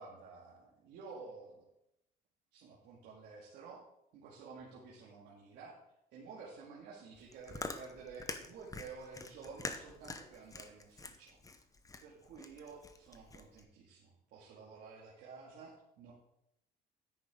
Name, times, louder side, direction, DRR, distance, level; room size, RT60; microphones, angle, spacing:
voice 1, 0.0-1.7 2.5-3.8 4.1-5.8 6.1-11.4 12.0-16.1, right 4 dB, 80° right, -5 dB, 2.2 m, -52 dB
Chewing mastication, 7.2-13.6, left 3 dB, 20° left, 0.9 m, -46 dB
9.7 x 9.4 x 3.7 m, 0.81 s
cardioid pair, 110°, 17 cm